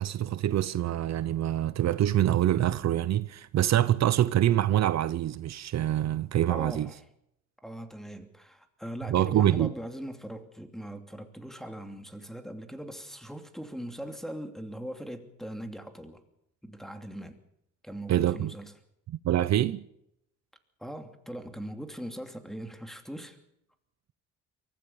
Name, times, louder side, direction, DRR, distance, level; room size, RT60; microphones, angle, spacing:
voice 1, 0.0-6.9 9.1-9.7 18.1-18.5 19.1-19.8, right 12 dB, 60° right, 0.7 m, -25 dB
voice 2, 6.5-7.0 7.6-16.2 16.6-17.4 17.8-18.7 20.8-23.4, equal, ahead, 2.8 m, -40 dB
23.5 x 15.5 x 7.1 m
cardioid pair, 90°, 30 cm